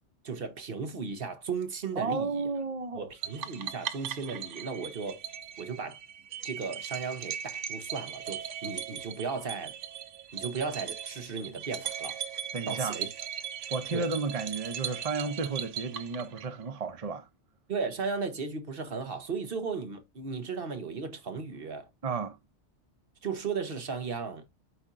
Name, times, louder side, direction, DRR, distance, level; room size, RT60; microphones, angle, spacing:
voice 1, 0.2-2.5 2.9-5.2 5.6-6.0 6.4-9.7 10.3-12.2 12.7-13.1 13.9-14.1 17.7-21.9 23.2-24.4, right 5 dB, 55° right, 1.1 m, -35 dB
voice 2, 2.0-3.1 12.5-13.0 13.7-17.3 22.0-22.4, right 4 dB, 35° right, 0.7 m, -32 dB
sound 1, 3.2-16.7, right 9 dB, 80° right, 1.0 m, -39 dB
12.0 x 4.3 x 2.4 m
omnidirectional pair, 1.2 m